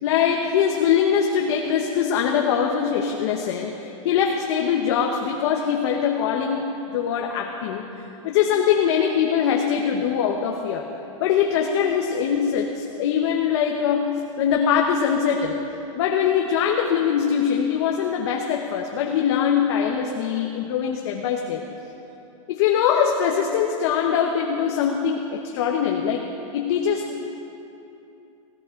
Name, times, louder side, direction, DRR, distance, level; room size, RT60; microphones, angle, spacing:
voice 1, 0.0-10.9 11.2-15.6 15.9-21.6 22.5-26.2 26.5-27.3, left 7 dB, 50° left, 1 dB, 1.1 m, -22 dB
18.0 x 16.5 x 3.9 m, 2.8 s
supercardioid pair, 160°, 18 cm